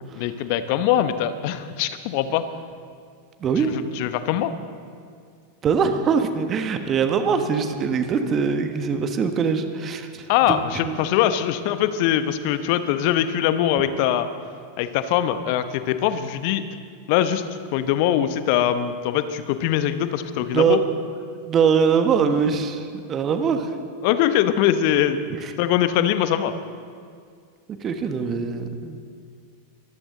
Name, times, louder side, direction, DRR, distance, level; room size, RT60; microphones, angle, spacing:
voice 1, 0.2-2.4 3.6-3.7 3.9-4.5 10.3-14.3 14.8-16.6 17.1-20.8 24.0-25.2 25.6-26.5, left 11 dB, 45° left, 11 dB, 0.9 m, -22 dB
voice 2, 3.4-3.7 5.6-11.0 20.5-20.8 21.5-23.7 25.3-25.5 27.8-29.0, right 6 dB, 25° right, 8 dB, 1.3 m, -22 dB
23.0 x 14.5 x 3.9 m, 2.2 s
figure-of-eight pair, 90°, 0 cm